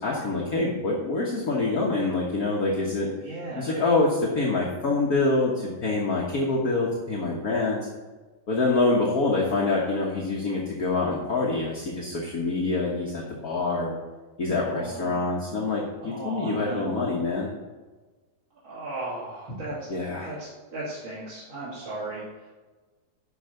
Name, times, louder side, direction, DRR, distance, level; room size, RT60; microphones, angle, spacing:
voice 1, 0.0-3.1 3.6-7.8 8.5-13.9 14.4-17.5 19.9-20.3, left 3 dB, 50° left, -3 dB, 1.6 m, -26 dB
voice 2, 3.2-3.8 14.6-15.2 16.0-17.1 18.6-19.8 20.2-22.5, right 2 dB, 80° right, -9 dB, 3.3 m, -36 dB
10.5 x 5.5 x 6.5 m, 1.3 s
omnidirectional pair, 2.2 m